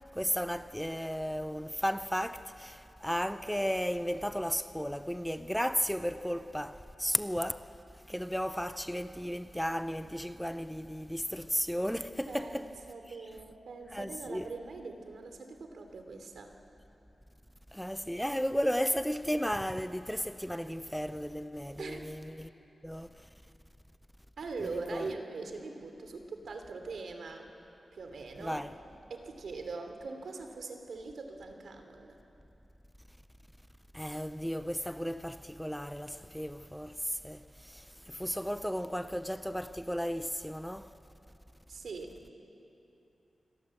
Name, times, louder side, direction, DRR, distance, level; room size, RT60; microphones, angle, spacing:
voice 1, 0.1-7.7 8.1-12.7 13.9-14.5 17.7-22.5 22.8-23.1 24.6-25.1 28.4-28.7 33.9-40.9, equal, ahead, 0.6 m, -34 dB
voice 2, 12.3-16.5 21.8-22.1 24.4-27.5 27.9-28.6 29.1-32.2 41.7-42.2, right 3 dB, 75° right, 2.9 m, -42 dB
27.5 x 25.0 x 7.8 m
wide cardioid pair, 155°, 0 cm